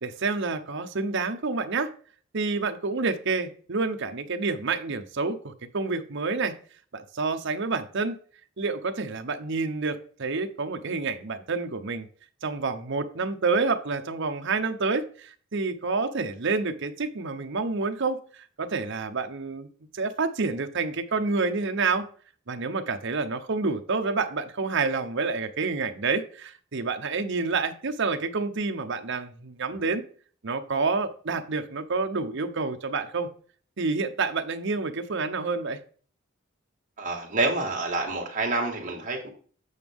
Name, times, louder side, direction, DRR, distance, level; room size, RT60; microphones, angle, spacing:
voice 1, 0.0-1.9 2.3-6.5 6.9-8.1 8.6-12.1 12.4-18.2 18.6-19.7 19.9-22.1 22.5-30.0 30.4-33.3 33.8-35.8, right 4 dB, 60° right, 7 dB, 0.8 m, -28 dB
voice 2, 37.0-39.3, right 3 dB, 40° right, 0 dB, 1.9 m, -27 dB
8.1 x 5.9 x 3.6 m, 0.43 s
head